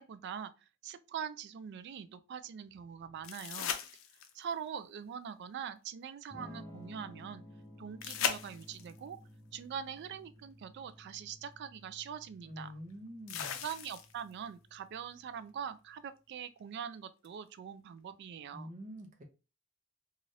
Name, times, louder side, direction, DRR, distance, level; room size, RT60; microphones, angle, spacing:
voice 1, 0.0-3.8 4.3-7.4 7.8-9.2 9.5-12.7 13.5-18.7, right 7 dB, 55° right, 0.3 m, -43 dB
sound 1, 3.2-4.5 8.0-9.0 10.9-11.0 13.3-14.3 17.2-17.3, left 8 dB, 80° left, 0.4 m, -37 dB
Electric guitar / Strum, 6.3-16.1, left 1 dB, 15° left, 0.5 m, -55 dB
voice 2, 12.5-13.6 18.5-19.2, equal, 40° right, 0.7 m, -46 dB
3.2 x 2.5 x 2.6 m
head